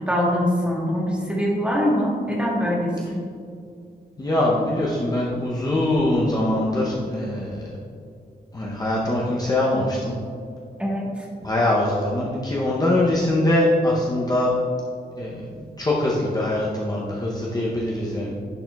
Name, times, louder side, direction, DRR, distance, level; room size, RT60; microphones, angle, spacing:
voice 1, 0.0-3.2 10.8-11.2, equal, 5° right, -4 dB, 1.2 m, -23 dB
voice 2, 4.2-7.7 8.5-10.2 11.4-14.5 15.2-18.3, left 1 dB, 25° left, -5 dB, 0.7 m, -23 dB
10.5 x 4.1 x 2.3 m, 2.4 s
wide cardioid pair, 135°, 17 cm